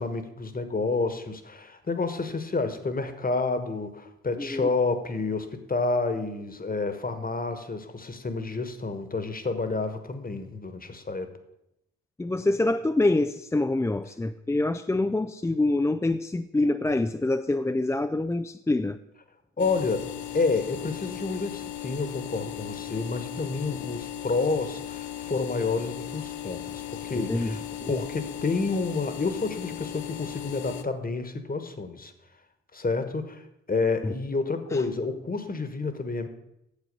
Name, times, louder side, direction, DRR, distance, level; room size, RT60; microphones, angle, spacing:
voice 1, 0.0-11.3 19.6-27.6 27.9-32.1 32.7-36.3, left 3 dB, 30° left, 9 dB, 1.3 m, -29 dB
voice 2, 4.4-4.7 12.2-19.0 27.2-27.9 34.0-34.1 34.7-34.8, left 2 dB, 10° left, 7 dB, 0.4 m, -26 dB
sound 1, 19.6-30.8, left 11 dB, 70° left, 0.6 m, -37 dB
8.4 x 7.3 x 5.4 m, 0.84 s
hypercardioid pair, 45°, 30 cm